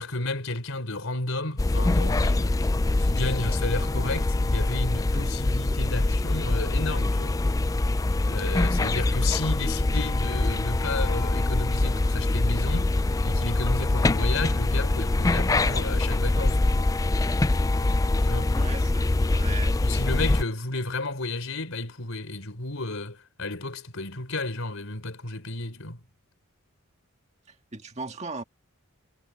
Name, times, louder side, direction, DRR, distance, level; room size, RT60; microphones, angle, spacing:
voice 1, 0.0-2.6 3.0-7.4 8.3-16.8 18.2-18.6 19.8-26.0, left 2 dB, 75° left, 3.8 m, -32 dB
sound 1, 1.6-20.4, left 2 dB, 15° left, 0.3 m, -24 dB
voice 2, 18.5-19.8 27.5-28.4, right 3 dB, 30° right, 1.8 m, -38 dB
head